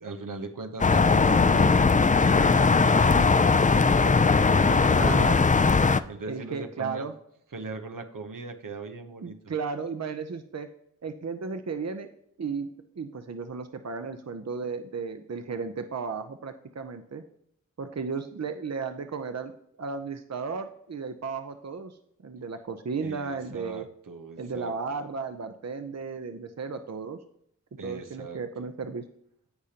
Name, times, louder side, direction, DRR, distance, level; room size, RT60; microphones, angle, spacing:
voice 1, 0.0-1.7 2.2-5.3 5.8-7.1 7.5-9.4 23.0-24.7 27.8-28.4, right 3 dB, 85° right, 5 dB, 0.9 m, -39 dB
sound 1, 0.8-6.0, left 4 dB, 25° left, 0.4 m, -20 dB
voice 2, 4.9-5.4 6.3-7.1 9.2-10.7 11.0-12.1 12.4-12.7 13.0-17.2 17.8-19.5 19.8-21.9 22.2-23.9 24.4-27.2 27.8-29.0, right 5 dB, 55° right, 8 dB, 0.7 m, -34 dB
15.0 x 5.1 x 2.9 m, 0.71 s
wide cardioid pair, 50°, 31 cm